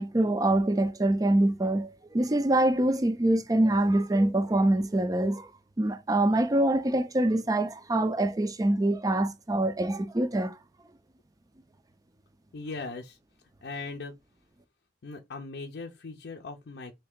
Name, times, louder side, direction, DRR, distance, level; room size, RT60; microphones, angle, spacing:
voice 1, 0.0-5.5 5.8-10.5, right 1 dB, 20° right, 0.4 m, -25 dB
voice 2, 12.5-13.2 13.6-14.1 15.0-17.0, left 3 dB, 60° left, 0.5 m, -39 dB
3.3 x 2.7 x 3.6 m
head